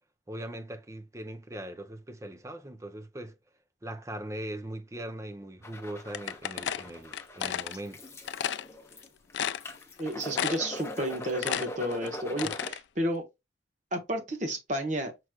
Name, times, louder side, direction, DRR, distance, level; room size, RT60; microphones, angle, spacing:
voice 1, 0.3-3.3 3.8-8.0, right 1 dB, 15° right, 0.5 m, -40 dB
sound 1, 5.6-12.7, left 1 dB, 15° left, 0.8 m, -41 dB
sound 2, 6.1-7.7 8.3-8.6 9.0-9.1 9.3-10.0 10.3-10.8 11.1-12.8, left 9 dB, 75° left, 0.3 m, -32 dB
voice 2, 10.0-13.2 13.9-15.1, right 1 dB, 40° right, 1.2 m, -32 dB
6.0 x 3.1 x 2.3 m
head